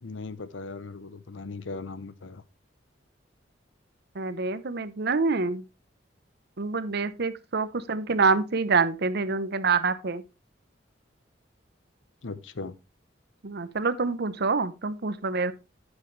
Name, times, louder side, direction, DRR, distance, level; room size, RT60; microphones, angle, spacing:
voice 1, 0.0-2.4 12.2-12.8, left 3 dB, 80° left, 0.8 m, -38 dB
voice 2, 4.1-5.6 6.6-10.2 13.4-15.5, right 4 dB, 60° right, 0.8 m, -26 dB
10.5 x 8.2 x 3.2 m
head